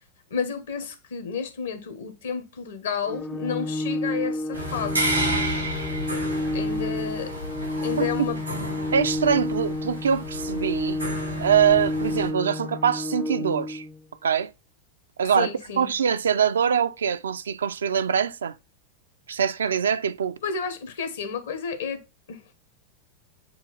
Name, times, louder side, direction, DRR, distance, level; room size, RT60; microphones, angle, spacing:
voice 1, 0.3-5.1 6.5-7.3 7.8-8.4 15.3-15.9 20.4-22.0 22.3-22.6, left 6 dB, 65° left, 0.9 m, -31 dB
Organ, 3.0-14.0, left 1 dB, 15° left, 0.3 m, -30 dB
sound 1, 4.5-12.3, right 1 dB, 90° right, 1.7 m, -31 dB
voice 2, 8.0-8.3 8.9-11.0 11.4-13.9 14.2-14.5 15.2-15.5 15.8-18.6 19.3-20.4, right 8 dB, 65° right, 0.3 m, -23 dB
6.9 x 2.4 x 3.1 m
figure-of-eight pair, 90°, 0 cm